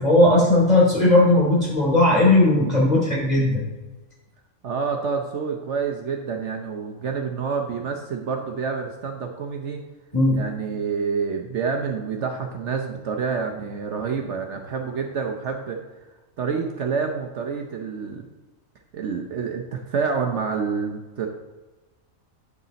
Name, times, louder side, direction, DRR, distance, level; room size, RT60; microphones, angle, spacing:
voice 1, 0.0-3.6 10.1-10.4, left 1 dB, 30° left, -4 dB, 2.8 m, -17 dB
voice 2, 4.6-9.8 10.3-15.8 16.4-18.2 18.9-21.3, right 5 dB, 60° right, 2 dB, 1.0 m, -28 dB
8.5 x 6.5 x 4.0 m, 1.1 s
omnidirectional pair, 1.4 m